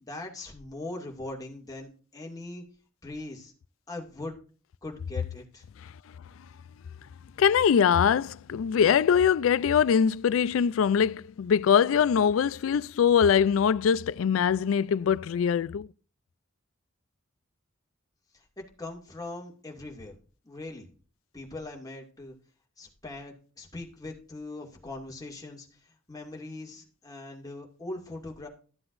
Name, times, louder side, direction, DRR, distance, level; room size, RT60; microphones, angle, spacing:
voice 1, 0.0-2.6 3.0-3.5 3.9-4.4 4.8-5.6 18.3-18.4 18.8-20.2 20.4-20.9 21.3-22.3 22.8-28.5, left 2 dB, 20° left, 2.3 m, -41 dB
voice 2, 7.4-15.9, left 7 dB, 80° left, 0.3 m, -23 dB
13.5 x 7.8 x 2.6 m
head